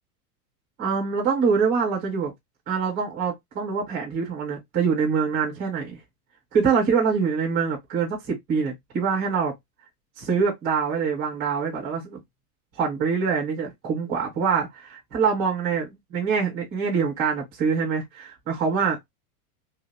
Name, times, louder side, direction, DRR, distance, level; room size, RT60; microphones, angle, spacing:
voice 1, 0.8-2.3 2.7-6.0 6.5-9.5 10.2-12.2 12.8-19.0, right 5 dB, 10° right, 0.4 m, -25 dB
2.8 x 2.7 x 3.0 m
supercardioid pair, 175°, 46 cm